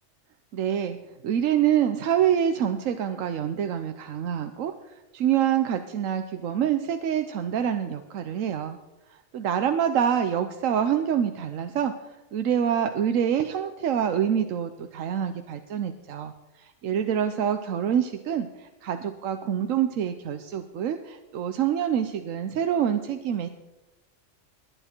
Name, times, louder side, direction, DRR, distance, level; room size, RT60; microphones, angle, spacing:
voice 1, 0.5-1.0 1.2-8.8 9.1-23.5, right 9 dB, 85° right, 8 dB, 1.1 m, -26 dB
21.0 x 10.0 x 4.4 m, 1.1 s
omnidirectional pair, 1.3 m